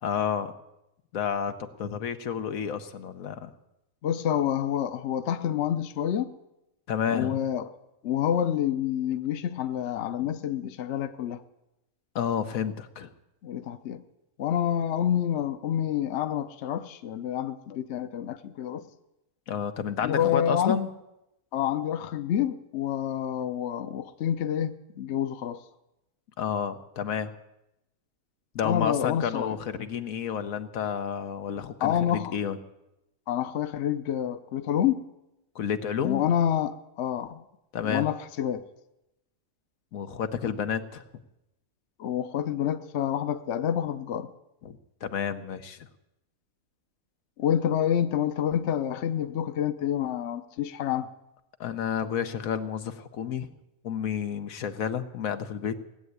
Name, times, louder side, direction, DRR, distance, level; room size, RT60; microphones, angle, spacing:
voice 1, 0.0-0.5 1.1-3.5 6.9-7.4 12.1-13.1 19.5-20.9 26.4-27.3 28.5-32.6 35.5-36.3 37.7-38.1 39.9-41.0 44.6-44.8 45.0-45.8 51.6-53.5 53.8-55.8, left 7 dB, 85° left, 1.4 m, -30 dB
voice 2, 4.0-6.3 7.1-7.7 8.0-11.4 13.4-14.0 14.4-18.9 20.0-20.8 21.5-25.6 28.6-29.6 31.8-32.4 33.3-35.0 36.0-37.4 37.8-38.6 42.0-44.3 47.4-51.1, left 10 dB, 60° left, 1.0 m, -28 dB
18.0 x 8.0 x 9.5 m
omnidirectional pair, 1.4 m